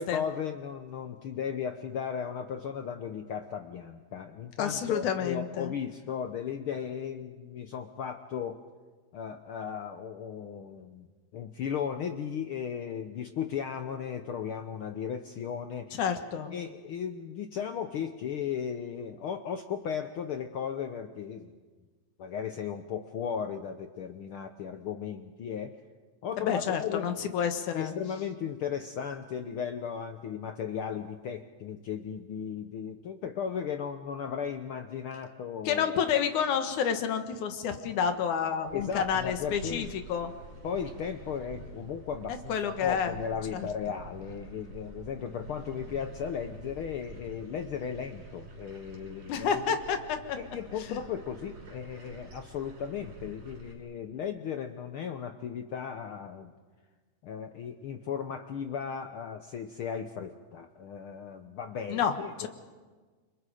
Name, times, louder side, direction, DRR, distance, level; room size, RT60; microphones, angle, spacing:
voice 1, 0.0-8.6 9.1-11.1 11.3-16.0 16.5-21.5 22.2-25.7 26.2-27.1 27.7-35.8 38.7-39.9 40.6-42.6 42.8-49.8 50.3-56.5 57.2-62.5, left 7 dB, 70° left, 7 dB, 1.3 m, -36 dB
voice 2, 4.6-5.7 16.0-16.5 26.4-27.9 35.6-40.3 42.3-43.2 43.5-44.0 49.3-50.4 50.9-51.0 61.9-62.1 62.4-62.5, left 7 dB, 90° left, 7 dB, 2.9 m, -30 dB
sound 1, 38.7-53.8, right 2 dB, 65° right, 5.0 m, -47 dB
28.5 x 25.5 x 5.0 m, 1.4 s
omnidirectional pair, 3.4 m